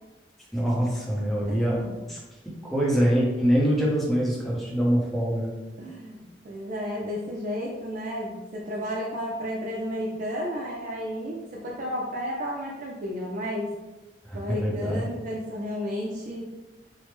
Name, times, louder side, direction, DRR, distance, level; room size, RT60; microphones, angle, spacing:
voice 1, 0.5-1.8 2.1-2.2 2.7-5.5 14.3-15.1, equal, ahead, -5 dB, 0.7 m, -24 dB
voice 2, 1.5-1.9 5.8-13.7 14.3-16.4, equal, 50° right, -3 dB, 0.4 m, -32 dB
3.4 x 2.0 x 3.2 m, 1.1 s
head